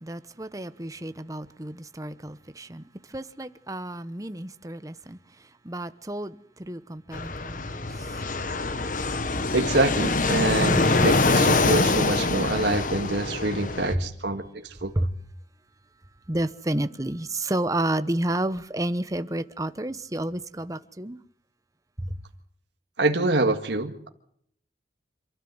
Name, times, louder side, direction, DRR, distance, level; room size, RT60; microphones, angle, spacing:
voice 1, 0.0-2.8 3.1-5.2 5.6-8.1 13.9-14.0 14.9-15.1 16.3-21.2 22.0-22.2, right 1 dB, 20° right, 0.9 m, -30 dB
Fixed-wing aircraft airplane, 7.1-13.9, left 3 dB, 45° left, 1.1 m, -24 dB
voice 2, 9.5-14.9 23.0-24.1, right 2 dB, 70° right, 1.9 m, -25 dB
27.5 x 13.0 x 7.9 m
head